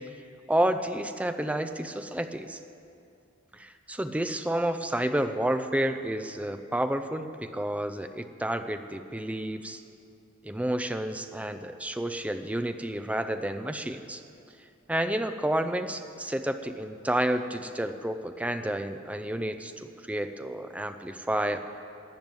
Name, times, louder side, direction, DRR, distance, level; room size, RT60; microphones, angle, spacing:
voice 1, 0.5-2.6 3.5-9.8 10.4-14.2 14.9-21.6, right 1 dB, 5° right, 8 dB, 0.6 m, -30 dB
13.0 x 9.2 x 8.9 m, 2.6 s
head